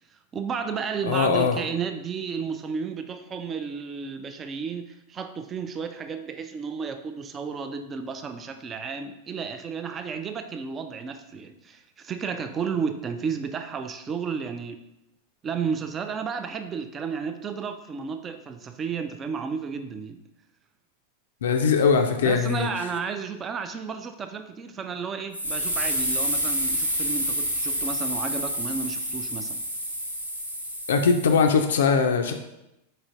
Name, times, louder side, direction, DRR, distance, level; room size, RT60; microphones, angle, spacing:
voice 1, 0.3-14.8 15.4-20.2 22.2-29.6, right 6 dB, 25° right, 8 dB, 0.3 m, -32 dB
voice 2, 1.1-1.6 21.4-22.7 30.9-32.3, left 5 dB, 60° left, 5 dB, 0.3 m, -21 dB
sound 1, 25.3-31.5, equal, 90° right, 0.7 m, -28 dB
4.9 x 4.2 x 2.5 m, 0.90 s
figure-of-eight pair, 90°, 0 cm